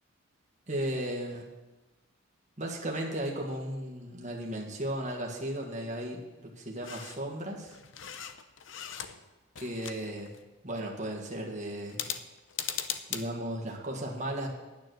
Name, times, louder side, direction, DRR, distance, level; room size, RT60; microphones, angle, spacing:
voice 1, 0.7-1.5 2.6-7.8 9.6-10.3 10.6-12.1 13.1-14.5, right 1 dB, 35° right, -1 dB, 1.7 m, -35 dB
sound 1, 6.8-7.2 7.6-9.3 9.5-10.4 11.9-13.2, left 9 dB, 70° left, 0.7 m, -38 dB
10.0 x 9.3 x 6.4 m, 1.1 s
head